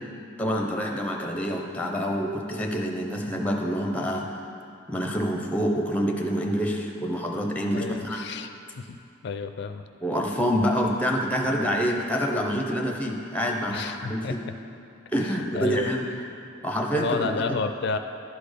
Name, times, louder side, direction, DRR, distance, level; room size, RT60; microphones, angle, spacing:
voice 1, 0.4-4.4 4.9-8.2 10.0-14.4 15.1-16.1 16.6-17.6, equal, 5° left, 1 dB, 0.6 m, -27 dB
voice 2, 7.7-8.5 8.8-9.0 9.2-9.8 13.7-14.5 15.2-15.9 16.9-18.0, left 4 dB, 60° left, 8 dB, 0.4 m, -31 dB
11.0 x 4.3 x 5.0 m, 2.5 s
head